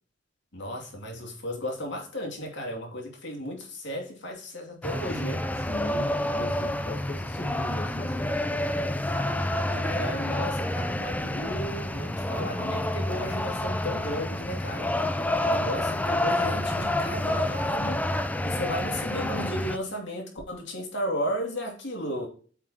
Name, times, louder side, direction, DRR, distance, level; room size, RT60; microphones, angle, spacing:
voice 1, 0.5-5.4 9.5-14.9 15.4-18.1 18.4-22.3, equal, 65° left, 2.7 m, -34 dB
sound 1, 4.8-19.8, left 1 dB, 10° left, 0.5 m, -28 dB
voice 2, 5.7-8.4, left 1 dB, 35° left, 1.1 m, -39 dB
8.9 x 5.9 x 2.9 m
head